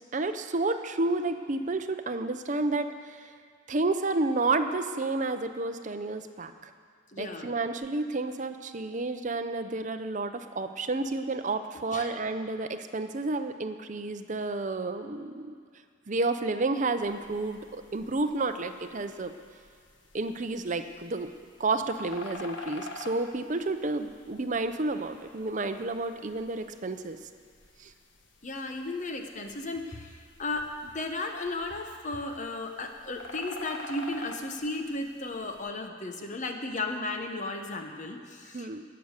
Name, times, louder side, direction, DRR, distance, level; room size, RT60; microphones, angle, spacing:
voice 1, 0.1-3.3 3.7-6.7 7.2-15.5 16.1-19.3 20.1-21.3 21.6-27.2 27.8-27.9 38.5-38.8, right 3 dB, 40° right, 8 dB, 0.6 m, -30 dB
voice 2, 7.1-7.5 11.9-12.1 28.4-38.7, left 2 dB, 40° left, 5 dB, 0.9 m, -35 dB
sound 1, 17.0-35.7, left 2 dB, 65° left, 1.3 m, -48 dB
17.5 x 6.9 x 6.6 m, 2.2 s
head